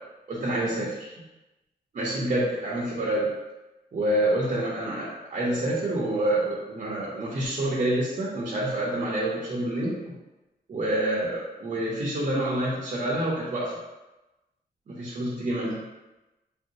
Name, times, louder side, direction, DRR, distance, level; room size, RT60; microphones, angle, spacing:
voice 1, 0.3-1.1 1.9-3.3 3.9-9.9 10.7-13.7 14.9-15.8, right 1 dB, 45° right, -6 dB, 0.7 m, -27 dB
3.4 x 2.6 x 2.8 m, 1.0 s
wide cardioid pair, 170°, 17 cm